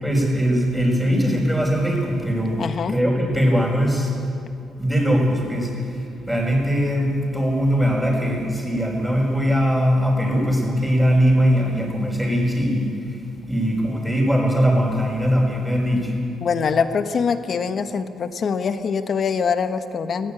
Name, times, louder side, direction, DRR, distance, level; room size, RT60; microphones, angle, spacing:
voice 1, 0.0-2.6 2.9-4.1 4.8-13.2 13.5-16.1, equal, 5° right, -7 dB, 4.9 m, -21 dB
voice 2, 2.6-3.0 16.4-20.3, left 6 dB, 55° left, 9 dB, 1.2 m, -23 dB
20.5 x 14.5 x 9.0 m, 2.6 s
cardioid pair, 90°, 0 cm